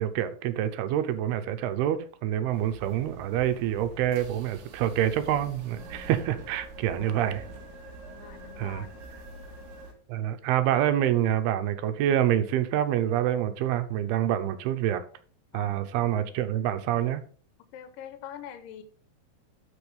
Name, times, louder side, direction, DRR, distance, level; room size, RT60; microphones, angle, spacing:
voice 1, 0.0-7.4 8.6-8.9 10.1-15.0 15.5-17.2, right 11 dB, 85° right, 2.7 m, -27 dB
sound 1, 2.5-9.9, right 2 dB, 55° right, 2.7 m, -45 dB
voice 2, 6.9-7.4 8.1-9.0 15.5-15.9 17.7-18.8, left 10 dB, 70° left, 2.4 m, -44 dB
15.0 x 5.3 x 3.4 m
omnidirectional pair, 4.5 m